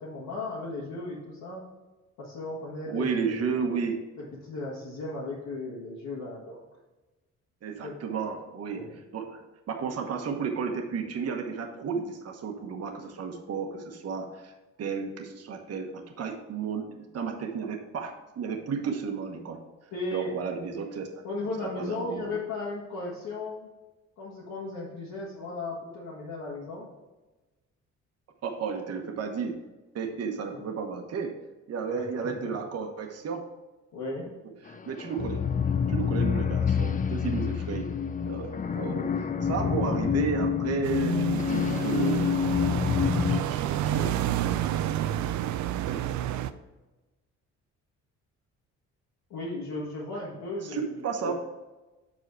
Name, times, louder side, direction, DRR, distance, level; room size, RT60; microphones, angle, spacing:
voice 1, 0.0-1.6 2.2-3.5 4.2-6.6 7.8-7.9 8.7-8.9 19.9-20.4 21.2-23.7 24.2-26.9 30.5-30.6 31.8-32.0 33.9-34.3 35.2-35.3 39.1-39.2 49.3-51.3, left 2 dB, 85° left, -7 dB, 1.9 m, -36 dB
voice 2, 2.9-4.0 7.6-8.8 9.1-9.4 9.7-19.6 20.1-21.2 21.6-22.3 28.4-29.6 29.9-31.3 31.7-33.4 34.7-35.4 35.9-38.0 38.3-42.3 43.2-44.1 44.4-44.5 45.9-46.0 50.6-51.3, right 5 dB, 55° right, 3 dB, 1.1 m, -33 dB
sound 1, 34.7-43.4, left 7 dB, 25° left, 0.5 m, -27 dB
sound 2, 40.8-46.5, right 11 dB, 70° right, 0.5 m, -30 dB
6.3 x 5.0 x 4.6 m, 1.1 s
cardioid pair, 90°, 30 cm